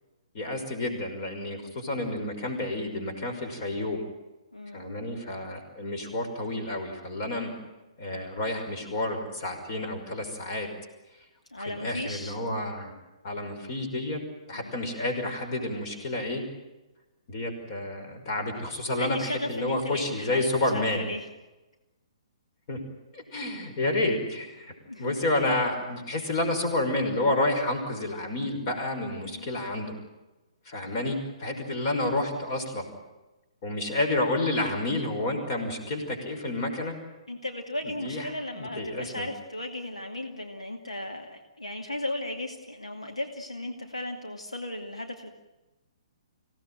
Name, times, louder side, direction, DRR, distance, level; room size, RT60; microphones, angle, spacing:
voice 1, 0.3-4.0 4.7-7.6 8.0-10.7 11.7-12.9 13.2-14.2 14.5-16.4 17.3-21.1 22.7-22.8 23.1-30.0 30.7-32.9 33.6-37.0 37.8-38.3 38.5-39.3, left 2 dB, 35° left, 5 dB, 5.7 m, -30 dB
voice 2, 4.5-4.9 7.2-7.4 11.5-12.3 14.5-14.8 18.9-21.3 24.9-25.2 29.2-29.5 37.3-45.3, left 1 dB, 75° left, 3 dB, 2.4 m, -36 dB
26.0 x 17.5 x 9.3 m, 1.1 s
figure-of-eight pair, 125°, 3 cm